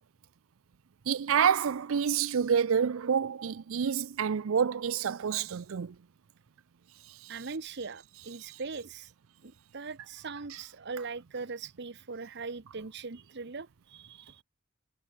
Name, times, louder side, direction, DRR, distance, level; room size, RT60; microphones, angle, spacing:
voice 1, 1.1-5.9, right 7 dB, 80° right, 0.5 m, -28 dB
voice 2, 7.3-9.1 9.4-14.4, right 4 dB, 55° right, 1.0 m, -40 dB
head